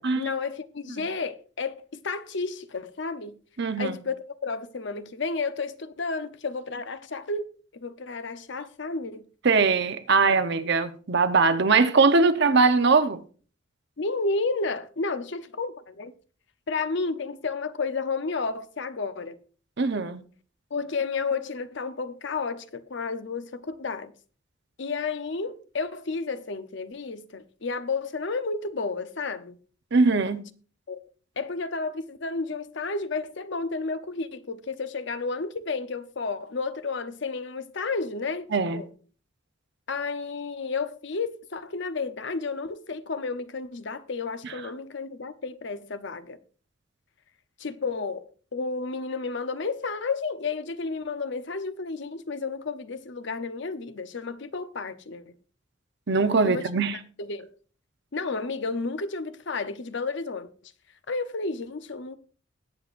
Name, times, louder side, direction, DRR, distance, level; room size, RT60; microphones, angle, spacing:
voice 1, 0.0-3.3 3.8-9.2 14.0-16.1 16.7-19.4 20.7-24.1 24.8-29.6 30.9-31.0 31.4-38.5 38.7-38.9 39.9-46.4 47.6-48.2 48.5-55.3 56.4-56.7 57.2-57.5 58.1-60.5 61.1-62.2, left 4 dB, 60° left, 0.8 m, -31 dB
voice 2, 3.6-4.0 9.4-13.2 19.8-20.2 29.9-30.4 38.5-38.8 44.4-44.5 56.1-57.0, right 4 dB, 60° right, 0.8 m, -21 dB
20.5 x 8.0 x 2.6 m
head